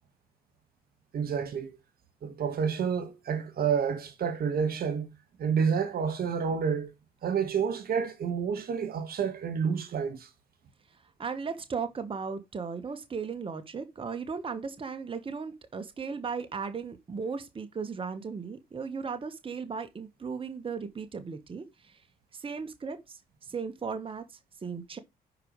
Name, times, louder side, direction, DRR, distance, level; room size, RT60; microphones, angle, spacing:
voice 1, 1.1-1.8 2.2-5.1 5.4-6.9 7.2-10.3, right 6 dB, 65° right, 1.7 m, -29 dB
voice 2, 11.2-22.0 22.3-25.0, right 5 dB, 30° right, 1.3 m, -36 dB
10.0 x 5.0 x 3.2 m
supercardioid pair, 75°, 17 cm